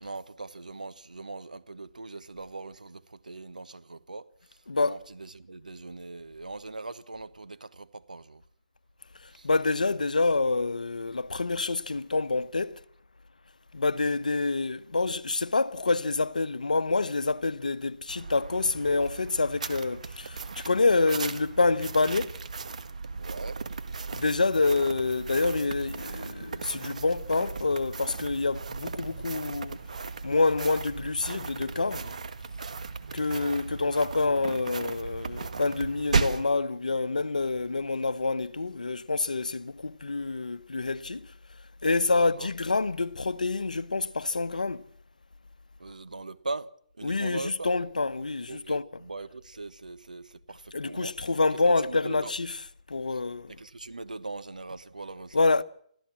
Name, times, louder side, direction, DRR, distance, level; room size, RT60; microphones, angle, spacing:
voice 1, 0.0-8.4 9.3-9.5 23.2-23.6 33.1-33.4 42.0-42.5 45.8-46.7 47.0-47.7 48.5-51.1 51.5-52.3 53.1-53.2 53.5-55.6, right 3 dB, 80° right, 1.3 m, -41 dB
voice 2, 4.7-5.0 9.4-12.8 13.7-22.3 24.1-29.8 30.2-32.1 33.1-41.3 41.8-44.8 47.0-48.8 50.7-52.6 52.9-53.5 55.3-55.6, left 3 dB, 80° left, 1.0 m, -27 dB
sound 1, 18.1-36.5, right 4 dB, 65° right, 1.7 m, -36 dB
25.5 x 14.5 x 7.4 m
figure-of-eight pair, 145°, 4 cm